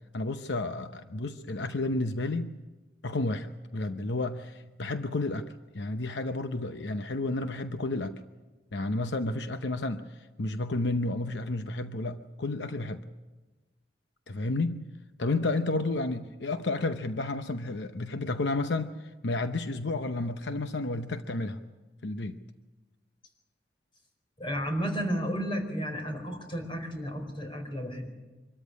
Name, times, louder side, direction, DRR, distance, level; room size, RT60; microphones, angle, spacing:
voice 1, 0.1-2.5 3.0-5.4 5.7-8.1 8.7-13.0 14.3-14.8 15.2-21.6 22.0-22.4, left 2 dB, 80° left, 8 dB, 0.8 m, -31 dB
voice 2, 24.4-28.1, equal, 30° left, 4 dB, 4.6 m, -32 dB
25.0 x 13.5 x 9.7 m, 1.2 s
head